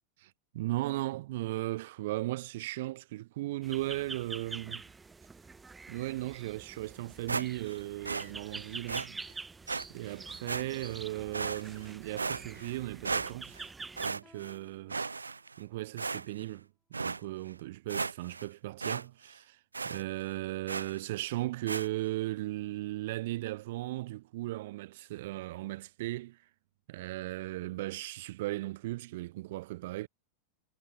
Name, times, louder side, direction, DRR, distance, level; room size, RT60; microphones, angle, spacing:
voice 1, 0.2-4.8 5.9-9.2 9.9-13.6 14.0-15.0 15.6-16.7 17.0-19.6 19.8-26.4 26.9-30.1, right 17 dB, 55° right, 0.9 m, -37 dB
sound 1, 3.6-14.1, right 4 dB, 10° right, 1.7 m, -46 dB
sound 2, 7.3-7.8 8.0-8.3 8.9-9.1 9.7-9.8 10.5-10.9 11.3-11.9 12.2-12.8 13.0-13.6 14.0-14.6 14.9-15.6 16.0-16.5 16.9-17.2 17.6-17.7 17.9-18.5 18.8-19.0 19.3-19.4 19.7-20.0 20.7-21.0 21.7-21.9, right 4 dB, 75° right, 0.4 m, -35 dB
sound 3, 8.2-10.6 11.2-12.7 14.2-15.9, left 2 dB, 10° left, 2.6 m, -67 dB
figure-of-eight pair, 90°, 0 cm